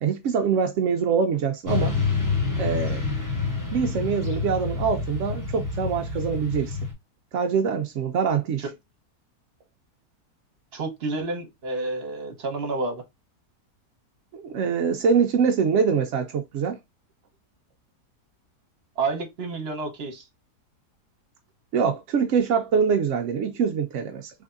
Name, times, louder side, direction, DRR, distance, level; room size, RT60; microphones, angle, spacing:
voice 1, 0.0-2.0 2.6-3.0 3.7-6.8 7.3-8.6 14.3-16.8 21.7-24.3, right 6 dB, 75° right, 0.7 m, -24 dB
Motorcycle / Traffic noise roadway noise, 1.7-6.9, left 4 dB, 15° left, 0.8 m, -27 dB
voice 2, 10.7-13.0 19.0-20.2, right 3 dB, 45° right, 1.0 m, -29 dB
3.5 x 3.3 x 2.4 m
omnidirectional pair, 1.7 m